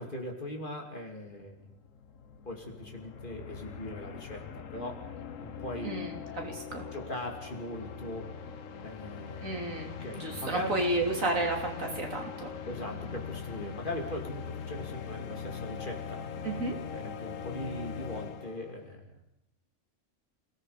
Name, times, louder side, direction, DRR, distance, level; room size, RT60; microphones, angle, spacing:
voice 1, 0.0-1.7 2.4-5.1 5.4-6.0 6.9-8.3 8.8-9.7 10.0-10.7 12.7-16.3 16.9-19.1, left 1 dB, 40° left, 2 dB, 3.1 m, -40 dB
sound 1, 1.1-1.2 1.4-18.9, left 7 dB, 75° left, 1.4 m, -41 dB
voice 2, 5.8-6.8 9.4-12.5 16.4-16.7, right 2 dB, 80° right, 1 dB, 3.6 m, -32 dB
28.5 x 18.5 x 5.1 m, 0.82 s
omnidirectional pair, 1.4 m